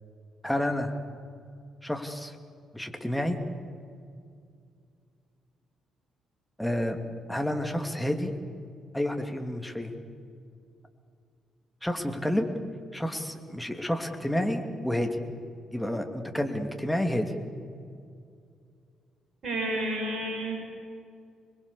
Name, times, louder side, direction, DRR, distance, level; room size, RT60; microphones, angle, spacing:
voice 1, 0.4-0.9 1.8-2.4 2.7-3.4 6.6-7.0 7.3-8.3 8.9-9.9 11.8-12.5 12.9-15.1 15.7-17.3, left 1 dB, 5° left, 4 dB, 2.8 m, -29 dB
voice 2, 19.4-20.5, right 1 dB, 50° right, 0 dB, 6.6 m, -30 dB
26.5 x 21.5 x 7.1 m, 2.3 s
figure-of-eight pair, 40°, 0 cm